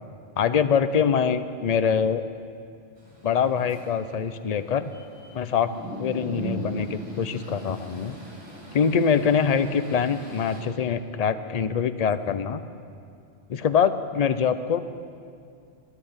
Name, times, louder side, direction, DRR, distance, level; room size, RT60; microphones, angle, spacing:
voice 1, 0.4-2.2 3.2-4.9 5.3-5.7 6.0-8.2 8.7-12.6 13.5-14.8, left 7 dB, 50° left, 11 dB, 0.5 m, -24 dB
sound 1, 3.0-10.6, right 1 dB, 60° right, 4.3 m, -40 dB
14.0 x 10.0 x 8.8 m, 2.4 s
omnidirectional pair, 1.2 m